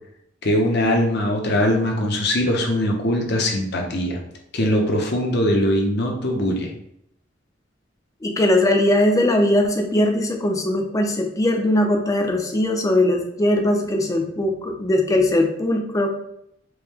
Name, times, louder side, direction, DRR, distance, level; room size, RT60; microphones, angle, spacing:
voice 1, 0.4-4.2 4.5-6.7, left 1 dB, 60° left, 1 dB, 0.7 m, -21 dB
voice 2, 8.2-16.2, left 1 dB, 20° left, 3 dB, 0.5 m, -20 dB
4.6 x 2.1 x 3.4 m, 0.74 s
head